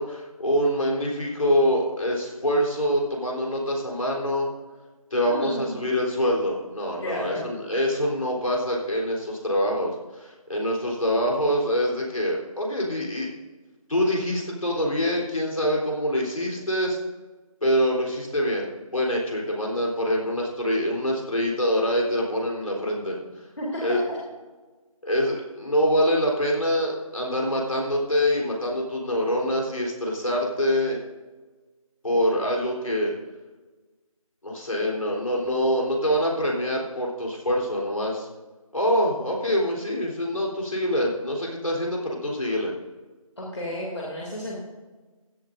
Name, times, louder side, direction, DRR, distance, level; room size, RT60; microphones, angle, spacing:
voice 1, 0.0-4.5 5.1-13.3 13.9-17.0 17.6-23.2 23.8-24.0 25.0-31.0 32.0-33.1 34.4-38.3 38.7-42.7, equal, 70° left, -2 dB, 3.7 m, -25 dB
voice 2, 5.3-5.8 7.0-7.4 23.6-24.2 43.4-44.6, equal, 55° left, -4 dB, 2.7 m, -32 dB
16.0 x 13.0 x 2.6 m, 1.3 s
figure-of-eight pair, 180°, 18 cm